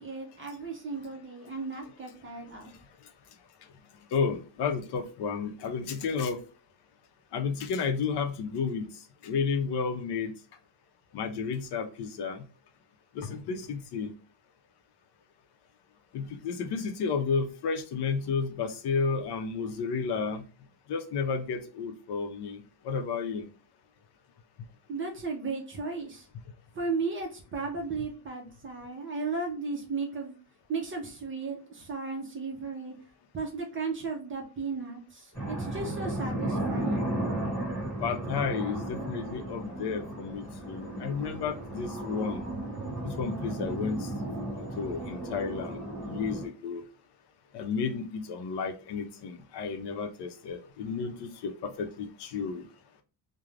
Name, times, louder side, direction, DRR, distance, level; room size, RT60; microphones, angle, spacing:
voice 1, 0.0-2.7 24.9-26.3 26.7-30.4 30.7-32.9 33.3-37.1, right 4 dB, 30° right, 2 dB, 0.5 m, -35 dB
voice 2, 4.1-6.4 7.3-8.9 9.2-10.3 11.1-12.4 13.1-14.1 16.1-20.4 20.9-23.5 38.0-42.4 43.0-44.1 44.6-46.8 47.5-52.7, left 5 dB, 60° left, 5 dB, 0.5 m, -32 dB
sound 1, 35.3-46.5, right 1 dB, 5° left, 1.1 m, -34 dB
2.4 x 2.0 x 3.1 m, 0.34 s
cardioid pair, 170°, 46 cm